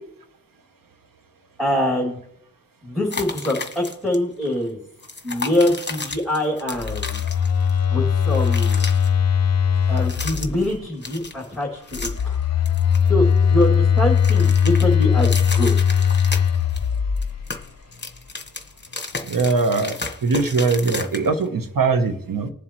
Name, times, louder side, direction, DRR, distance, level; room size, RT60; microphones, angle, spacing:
voice 1, 1.6-2.1 2.8-4.8 5.2-7.2 7.9-8.8 9.9-12.4 13.1-13.2 13.5-15.7, left 1 dB, ahead, -2 dB, 2.6 m, -24 dB
sound 1, 3.1-4.2 4.4-4.6 5.0-7.8 8.1-9.1 9.9-10.7 11.0-12.3 12.7-13.7 14.0-16.9 17.2-21.5, left 3 dB, 30° left, 1.2 m, -33 dB
Telephone, 6.8-10.8 11.9-17.6, left 7 dB, 50° left, 0.7 m, -19 dB
voice 2, 19.3-19.9 20.2-22.5, right 4 dB, 75° right, 8 dB, 1.0 m, -21 dB
19.5 x 7.4 x 3.1 m, 0.71 s
cardioid pair, 40°, 34 cm